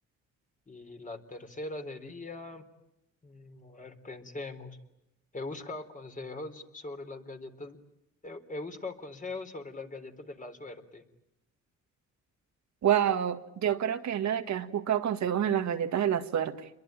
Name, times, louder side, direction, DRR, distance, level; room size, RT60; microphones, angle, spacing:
voice 1, 0.7-2.6 3.2-4.8 5.3-7.8 8.2-11.0, left 2 dB, 25° left, 3.7 m, -41 dB
voice 2, 12.8-16.7, right 9 dB, 65° right, 1.9 m, -28 dB
29.0 x 22.5 x 8.9 m
cardioid pair, 90°, 30 cm